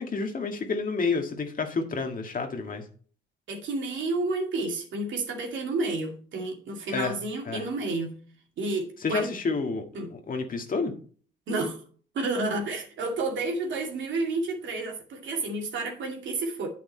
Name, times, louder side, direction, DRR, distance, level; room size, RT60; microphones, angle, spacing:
voice 1, 0.0-2.8 6.9-7.1 7.5-7.6 9.0-9.8 10.1-10.9, left 4 dB, 45° left, 4 dB, 1.8 m, -29 dB
voice 2, 3.5-8.2 8.6-9.3 9.9-10.1 11.5-11.8 12.1-16.7, right 2 dB, 70° right, 1 dB, 2.5 m, -30 dB
8.6 x 6.1 x 4.4 m, 0.43 s
cardioid pair, 90°, 20 cm